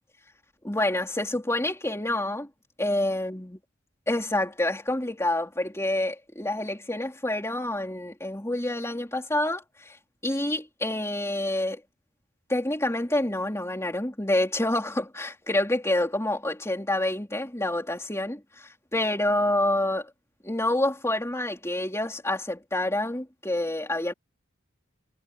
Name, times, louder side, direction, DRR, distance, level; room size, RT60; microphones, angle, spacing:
voice 1, 0.6-2.5 2.8-3.5 4.1-10.0 10.2-11.8 12.5-20.1 20.4-24.1, left 1 dB, 15° left, 3.6 m, -27 dB
head